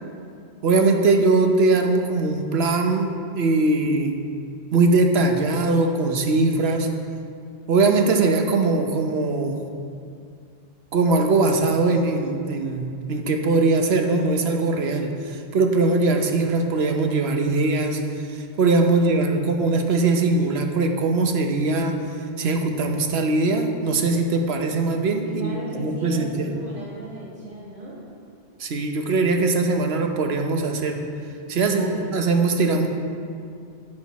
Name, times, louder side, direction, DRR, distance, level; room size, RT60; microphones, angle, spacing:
voice 1, 0.6-4.2 4.7-6.9 7.7-9.6 10.9-18.0 18.3-22.0 22.4-26.5 28.6-31.0 31.5-32.9, right 3 dB, 65° right, 4 dB, 1.0 m, -21 dB
voice 2, 18.9-19.4 25.3-28.0 31.5-32.1, right 1 dB, 45° right, -12 dB, 2.0 m, -37 dB
9.6 x 6.9 x 4.1 m, 2.4 s
omnidirectional pair, 1.2 m